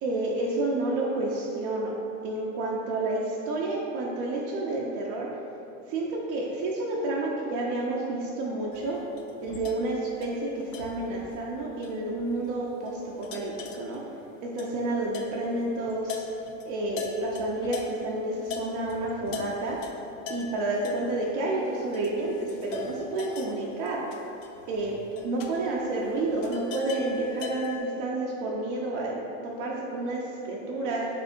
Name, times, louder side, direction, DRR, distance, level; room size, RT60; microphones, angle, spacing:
voice 1, 0.0-1.9 2.2-5.3 5.9-9.0 9.4-14.0 14.4-16.2 16.6-19.8 20.3-24.0 24.7-25.0 25.2-31.1, right 2 dB, 50° right, -3 dB, 0.7 m, -30 dB
sound 1, 8.7-18.1 18.5-27.8, left 6 dB, 70° left, 0.6 m, -41 dB
3.5 x 3.4 x 4.4 m, 2.9 s
hypercardioid pair, 90°, 40 cm